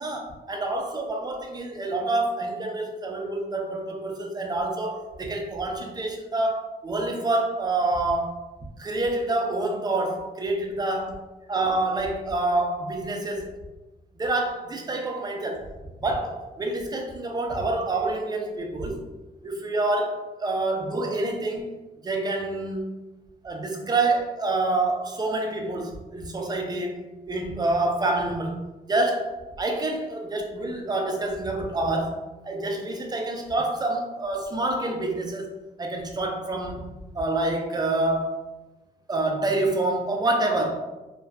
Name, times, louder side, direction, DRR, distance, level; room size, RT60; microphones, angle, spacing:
voice 1, 0.0-8.4 8.8-11.1 11.5-13.5 14.2-15.7 16.0-19.0 19.4-21.8 22.0-22.9 23.4-32.2 32.4-35.5 35.8-38.4 39.1-40.8, right 2 dB, 25° right, 2 dB, 0.4 m, -27 dB
2.5 x 2.3 x 2.2 m, 1.1 s
cardioid pair, 105°, 16 cm